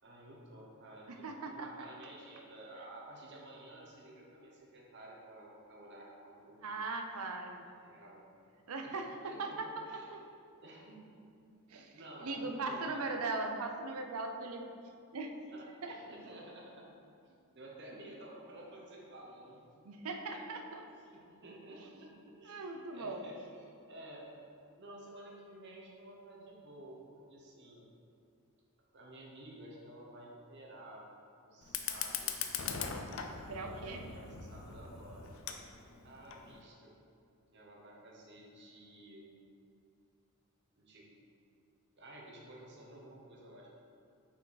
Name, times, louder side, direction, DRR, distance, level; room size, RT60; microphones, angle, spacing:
voice 1, 0.0-6.6 7.6-8.3 8.8-10.1 10.5-11.3 11.9-13.0 15.5-16.9 17.2-19.6 20.1-20.4 20.9-24.3 24.8-27.9 28.9-31.0 31.4-32.5 33.6-35.3 36.0-37.0 37.5-39.3 40.8-41.1 42.0-43.7, right 1 dB, 55° right, -2 dB, 1.1 m, -52 dB
voice 2, 1.1-1.9 6.6-7.6 8.7-9.7 10.1-10.2 11.7-11.9 12.2-14.7 15.1-15.3 15.8-15.9 19.8-20.8 22.4-23.2 33.5-34.0, right 3 dB, 85° right, 4 dB, 0.6 m, -39 dB
Fire, 31.6-36.6, left 7 dB, 65° left, 0.5 m, -41 dB
6.0 x 4.5 x 4.1 m, 2.5 s
head